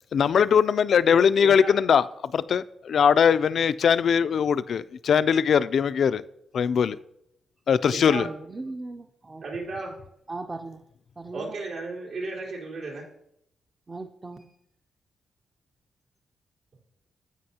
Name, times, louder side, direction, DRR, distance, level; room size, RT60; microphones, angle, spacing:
voice 1, 0.1-6.2 6.5-7.0 7.7-8.3, left 7 dB, 60° left, 0.3 m, -21 dB
voice 2, 1.4-1.7 7.9-8.3 9.4-10.0 11.3-13.1, right 3 dB, 85° right, 3.8 m, -34 dB
voice 3, 8.2-9.4 9.9-10.0 10.3-10.8 11.2-11.6 13.9-14.5, right 3 dB, 25° right, 0.4 m, -38 dB
15.5 x 5.3 x 2.8 m
wide cardioid pair, 135°, 0 cm